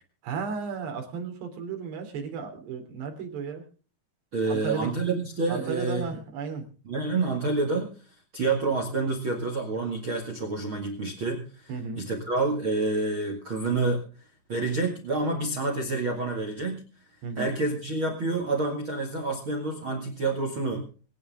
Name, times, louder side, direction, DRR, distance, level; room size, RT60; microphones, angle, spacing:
voice 1, 0.2-3.6 4.5-4.9 5.5-6.6 11.7-12.0 17.2-17.5, right 5 dB, 75° right, 4 dB, 5.2 m, -34 dB
voice 2, 4.3-6.1 6.8-7.9 8.3-14.0 14.5-16.8 17.4-20.8, right 3 dB, 40° right, 4 dB, 2.2 m, -28 dB
24.5 x 10.5 x 3.7 m, 0.38 s
omnidirectional pair, 4.9 m